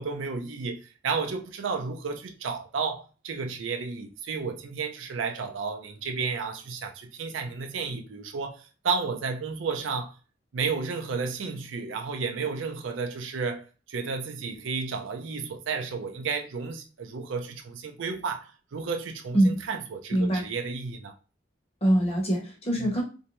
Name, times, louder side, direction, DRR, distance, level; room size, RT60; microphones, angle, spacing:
voice 1, 0.0-10.1 10.5-21.1 22.7-22.9, right 5 dB, 85° right, 0.5 m, -32 dB
voice 2, 20.1-20.4 21.8-23.0, right 1 dB, 35° left, 0.9 m, -23 dB
2.6 x 2.1 x 2.9 m
head